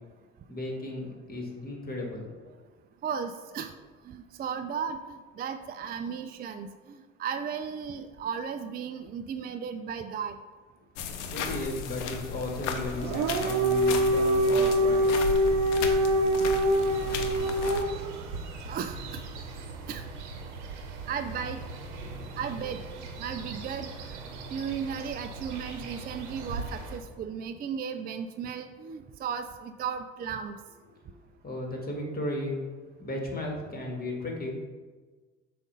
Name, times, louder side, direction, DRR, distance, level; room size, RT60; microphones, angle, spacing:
voice 1, 0.5-2.4 11.3-15.1 31.1-31.2 31.4-32.6 33.0-34.6, left 1 dB, 25° left, 0 dB, 1.7 m, -35 dB
voice 2, 3.0-3.7 4.0-10.4 15.7-16.1 18.7-19.2 19.9-20.0 21.1-21.6 22.4-22.8 23.2-23.9 24.5-30.6, right 7 dB, 25° right, 8 dB, 0.4 m, -35 dB
sound 1, 11.0-17.8, left 5 dB, 80° left, 0.7 m, -35 dB
Dog, 12.9-18.1, right 1 dB, 50° right, 0.7 m, -24 dB
sound 2, 16.7-27.0, right 3 dB, 80° right, 0.8 m, -40 dB
7.1 x 2.6 x 5.4 m, 1.4 s
hypercardioid pair, 60°, 35 cm